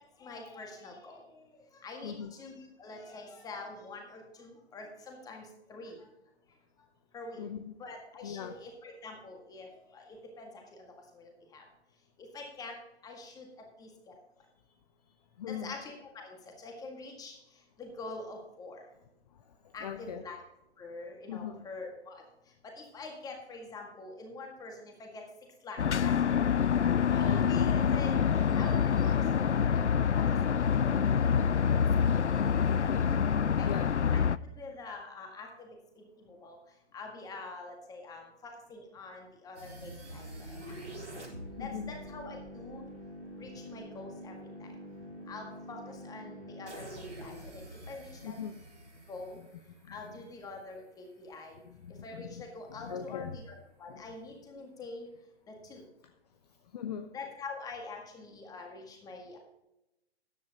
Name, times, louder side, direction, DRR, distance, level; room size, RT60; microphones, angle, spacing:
voice 1, 0.2-1.4 1.8-6.0 7.1-7.4 7.8-10.9 11.1-11.6 12.2-12.8 13.0-14.1 15.5-17.4 17.8-18.8 19.7-20.4 20.8-22.2 22.6-25.2 25.6-26.4 27.1-28.2 28.5-31.3 32.0-32.5 33.6-33.7 34.1-34.2 34.6-35.7 36.0-36.6 36.9-40.6 41.6-42.8 43.4-44.3 44.6-44.7 45.3-48.4 49.1-49.4 49.9-51.6 52.0-55.1 55.5-55.8 57.1-59.4, left 3 dB, 10° left, 2 dB, 1.9 m, -45 dB
voice 2, 2.0-2.3 7.4-7.6 8.2-8.6 15.4-15.7 19.5-20.2 21.3-21.7 32.7-33.1 33.6-34.0 41.6-41.9 48.2-48.6 49.8-50.2 51.6-53.4 53.9-54.0 56.7-57.1, left 8 dB, 35° left, 9 dB, 0.7 m, -40 dB
sound 1, 25.8-34.4, left 7 dB, 90° left, 0.5 m, -26 dB
sound 2, 39.5-50.5, equal, 80° right, 4.6 m, -46 dB
13.5 x 10.5 x 2.9 m, 0.91 s
figure-of-eight pair, 125°, 34 cm